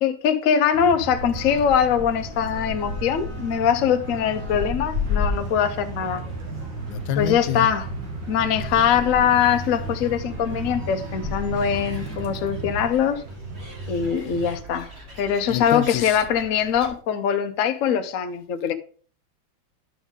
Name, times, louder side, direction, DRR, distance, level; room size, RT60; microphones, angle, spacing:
voice 1, 0.0-6.2 7.2-7.9 8.3-13.2 13.9-14.9 15.2-18.7, left 8 dB, 60° left, 0.9 m, -22 dB
sound 1, 0.7-12.9, right 3 dB, 60° right, 2.3 m, -35 dB
Gull seagull, 1.2-16.9, left 4 dB, 30° right, 2.2 m, -36 dB
sound 2, 2.1-14.6, right 2 dB, 45° right, 2.3 m, -40 dB
voice 2, 6.9-7.7 8.6-8.8 14.2-14.4 15.5-16.2, left 11 dB, 80° left, 1.4 m, -28 dB
10.5 x 6.2 x 3.7 m
omnidirectional pair, 2.2 m